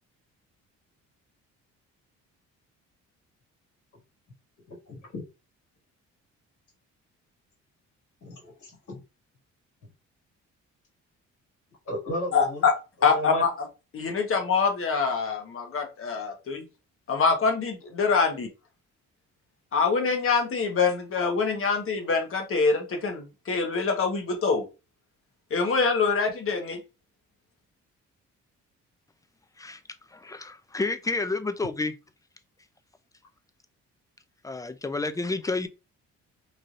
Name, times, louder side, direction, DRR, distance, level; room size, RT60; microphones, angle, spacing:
voice 1, 4.7-5.2 8.2-9.0 11.9-12.6 13.1-13.4, equal, 70° left, 1.9 m, -34 dB
voice 2, 12.3-12.7 13.0-13.5 13.9-16.6 17.1-18.5 19.7-24.6 25.5-26.8, left 5 dB, 45° left, 1.0 m, -25 dB
voice 3, 30.1-31.9 34.4-35.7, left 3 dB, 10° left, 0.4 m, -30 dB
3.2 x 2.6 x 2.5 m
cardioid pair, 90°, 30 cm